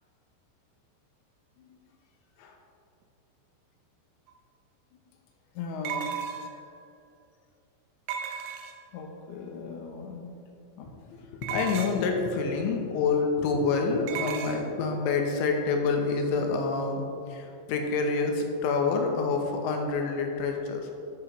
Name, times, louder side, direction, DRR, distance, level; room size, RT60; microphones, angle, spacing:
sound 1, 4.3-4.4 5.9-6.7 8.1-9.0 11.4-12.1 14.1-14.6, right 8 dB, 85° right, 3.3 m, -35 dB
voice 1, 5.6-6.2 8.9-10.4 10.8-20.9, left 4 dB, 80° left, 3 dB, 2.8 m, -28 dB
12.0 x 7.3 x 3.0 m, 2.5 s
omnidirectional pair, 5.6 m